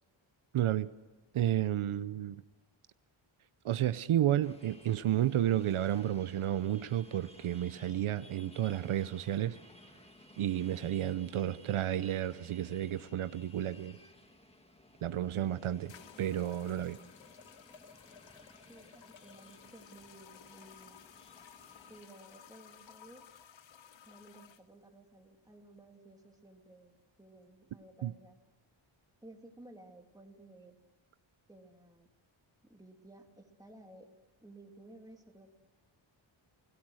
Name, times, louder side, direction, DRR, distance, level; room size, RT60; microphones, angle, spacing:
voice 1, 0.5-0.9 1.3-2.4 3.6-9.6 10.4-14.0 15.0-15.9 16.2-17.0 28.0-28.1, right 11 dB, 80° right, 14 dB, 0.8 m, -31 dB
sound 1, 4.4-22.0, left 1 dB, 10° left, 1.7 m, -58 dB
sound 2, 15.1-15.2 15.9-24.6, left 8 dB, 65° left, 1.1 m, -56 dB
voice 2, 18.7-21.0 21.9-23.2 24.0-26.9 27.2-28.4 29.2-30.8 31.5-32.1 32.6-34.1 34.4-35.5, right 1 dB, 5° right, 3 dB, 2.7 m, -55 dB
28.5 x 18.0 x 6.4 m, 1.2 s
wide cardioid pair, 135°, 49 cm